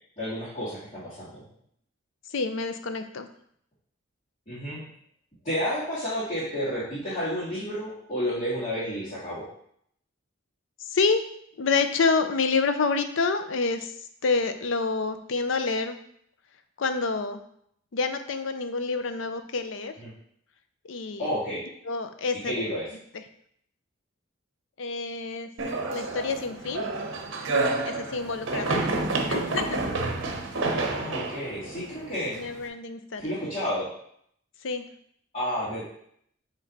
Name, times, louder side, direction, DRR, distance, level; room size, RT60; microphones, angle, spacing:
voice 1, 0.2-1.4 4.5-4.9 5.4-9.5 20.0-20.1 21.2-21.6 22.4-22.9 28.9-29.6 30.8-32.4 33.2-33.9 35.3-35.8, equal, 30° left, -11 dB, 1.9 m, -31 dB
voice 2, 2.3-3.3 10.9-11.2 11.6-13.9 14.2-16.0 16.8-17.4 17.9-19.9 20.9-21.3 21.8-22.5 24.8-25.5 25.9-26.9 27.8-29.0 29.3-29.8 32.3-33.3 34.6-34.9, left 4 dB, 75° left, 8 dB, 0.6 m, -27 dB
sound 1, 25.6-32.7, right 3 dB, 70° right, 0.8 m, -29 dB
7.3 x 3.2 x 4.1 m, 0.68 s
head